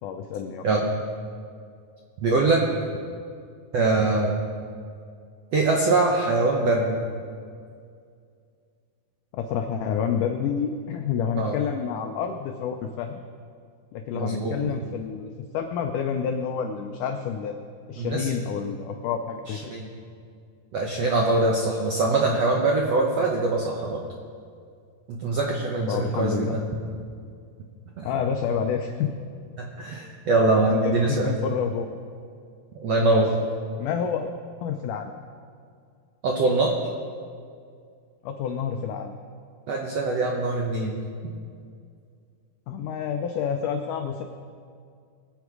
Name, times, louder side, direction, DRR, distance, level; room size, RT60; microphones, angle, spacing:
voice 1, 0.0-0.6 9.3-13.2 13.9-17.6 17.9-19.7 25.9-26.6 28.0-29.1 30.6-30.9 31.2-31.9 33.0-33.3 33.8-34.3 34.6-35.1 38.2-39.1 42.7-44.2, left 7 dB, 85° left, 5 dB, 1.8 m, -28 dB
voice 2, 0.6-0.9 2.2-2.6 3.7-4.4 5.5-7.0 11.4-11.6 14.1-14.7 18.0-18.3 19.5-19.9 20.7-24.0 25.1-26.6 28.0-28.1 29.6-31.3 32.7-33.4 36.2-36.7 39.7-41.0, right 2 dB, 75° right, -1 dB, 1.4 m, -23 dB
23.0 x 8.0 x 4.8 m, 2.2 s
omnidirectional pair, 4.5 m